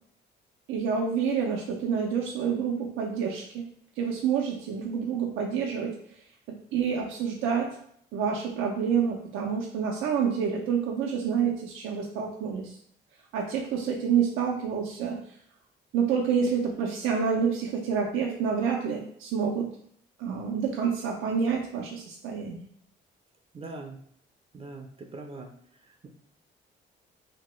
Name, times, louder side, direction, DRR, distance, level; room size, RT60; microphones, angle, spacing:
voice 1, 0.7-3.7 4.0-5.9 6.7-7.8 8.1-12.8 13.3-15.2 15.9-19.7 20.2-22.7, right 6 dB, 90° right, -1 dB, 0.4 m, -28 dB
voice 2, 23.5-24.0 24.5-25.5 25.9-26.1, right 3 dB, 30° right, 4 dB, 0.4 m, -41 dB
2.8 x 2.1 x 3.0 m, 0.65 s
cardioid pair, 90°, 20 cm